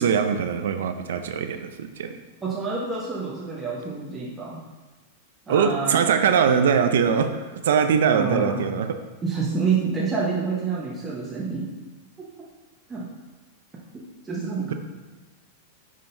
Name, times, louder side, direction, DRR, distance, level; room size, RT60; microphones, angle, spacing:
voice 1, 0.0-2.2 5.5-9.0, right 7 dB, 80° right, 8 dB, 0.4 m, -22 dB
voice 2, 2.4-4.6 5.5-6.0 8.1-8.7 9.2-11.7 12.9-13.1 13.9-14.7, right 4 dB, 15° right, -5 dB, 0.8 m, -28 dB
9.6 x 3.7 x 2.6 m, 1.2 s
supercardioid pair, 140°, 0 cm